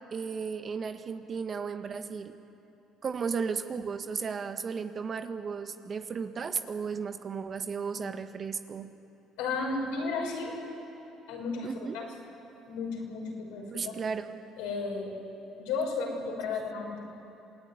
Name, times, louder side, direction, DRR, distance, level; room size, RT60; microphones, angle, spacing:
voice 1, 0.1-2.3 3.0-8.9 11.6-12.0 13.7-14.3, right 5 dB, 45° right, 8 dB, 1.6 m, -34 dB
voice 2, 9.4-10.6 11.3-12.1 12.7-14.0 14.6-15.1 15.6-17.0, left 4 dB, 80° left, 0 dB, 5.9 m, -33 dB
27.5 x 16.5 x 9.8 m, 2.9 s
hypercardioid pair, 65°, 0 cm